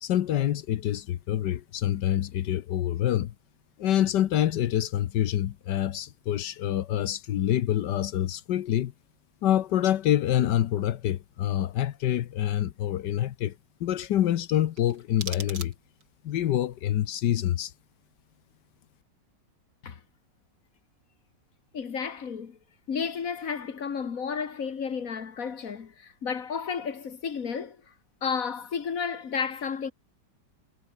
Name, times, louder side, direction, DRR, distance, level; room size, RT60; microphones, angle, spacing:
voice 1, 0.0-3.3 3.8-8.9 9.4-13.5 13.8-15.7 16.2-17.7, left 12 dB, 80° left, 1.5 m, -26 dB
sound 1, 14.7-16.2, right 3 dB, 85° right, 5.1 m, -41 dB
voice 2, 21.7-22.6 22.9-27.8 28.2-29.9, left 6 dB, 50° left, 1.8 m, -32 dB
omnidirectional pair, 1.9 m